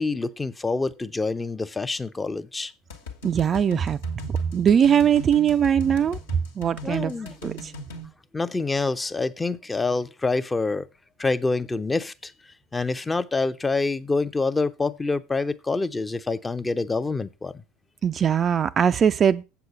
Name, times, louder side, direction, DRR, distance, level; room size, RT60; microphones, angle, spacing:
voice 1, 0.0-2.7 6.8-7.3 8.3-10.9 11.2-12.3 12.7-17.5, left 3 dB, 15° left, 0.6 m, -26 dB
sound 1, 2.9-8.1, equal, 65° left, 1.3 m, -39 dB
voice 2, 3.2-4.0 4.3-6.2 6.6-7.1 7.4-7.7 18.0-19.4, right 8 dB, 30° right, 0.4 m, -21 dB
7.8 x 6.9 x 5.2 m
figure-of-eight pair, 70°, 0 cm